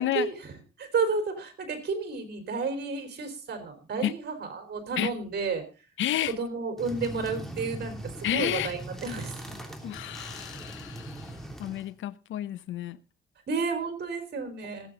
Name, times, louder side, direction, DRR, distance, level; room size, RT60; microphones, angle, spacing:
voice 1, 0.0-5.6 6.2-9.5 13.5-14.9, right 4 dB, 55° right, 3.8 m, -32 dB
voice 2, 6.0-6.3 8.2-8.7 9.8-13.0, left 12 dB, 75° left, 0.7 m, -31 dB
sound 1, 6.8-11.9, right 1 dB, ahead, 3.0 m, -40 dB
18.0 x 8.5 x 3.9 m
cardioid pair, 90°, 20 cm